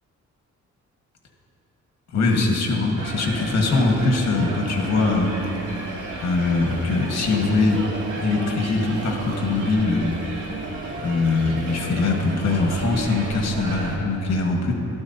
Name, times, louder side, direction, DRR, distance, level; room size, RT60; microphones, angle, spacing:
voice 1, 2.1-5.4 6.2-7.8 8.2-10.2 11.0-14.7, left 3 dB, 60° left, 1 dB, 1.6 m, -22 dB
sound 1, 3.0-14.0, right 2 dB, 85° right, 1.7 m, -33 dB
12.5 x 12.5 x 2.8 m, 2.8 s
wide cardioid pair, 150°, 30 cm